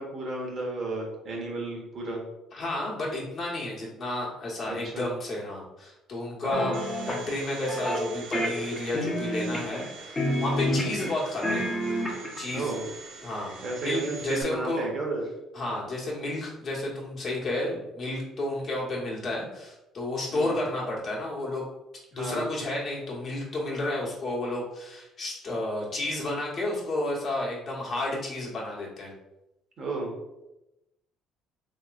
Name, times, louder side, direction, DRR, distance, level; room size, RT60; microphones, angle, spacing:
voice 1, 0.0-2.2 4.7-5.1 6.4-6.8 10.6-11.0 12.5-12.8 13.6-15.2 20.3-20.6 22.1-22.5 29.8-30.1, right 2 dB, 50° right, 0 dB, 0.9 m, -33 dB
voice 2, 2.5-11.7 12.4-12.7 13.2-14.9 15.5-21.7 22.1-29.1, left 1 dB, 50° left, -4 dB, 1.1 m, -32 dB
sound 1, 6.5-7.2 7.7-8.0 8.3-9.9 10.2-11.1 11.4-12.4, equal, 20° left, 0.6 m, -29 dB
Domestic sounds home sounds, 6.7-14.4, right 4 dB, 85° right, 0.5 m, -44 dB
3.0 x 2.9 x 2.4 m, 0.94 s
cardioid pair, 95°, 0 cm